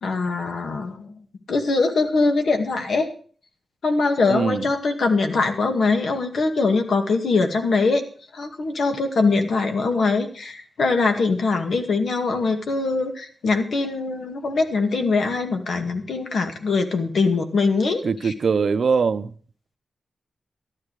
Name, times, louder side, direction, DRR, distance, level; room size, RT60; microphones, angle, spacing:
voice 1, 0.0-1.2 1.5-3.1 3.8-8.0 8.3-18.3, left 3 dB, 70° left, 2.1 m, -22 dB
voice 2, 4.3-4.7 18.0-19.3, right 5 dB, 60° right, 0.7 m, -22 dB
12.5 x 12.5 x 4.8 m
wide cardioid pair, 160°, 0 cm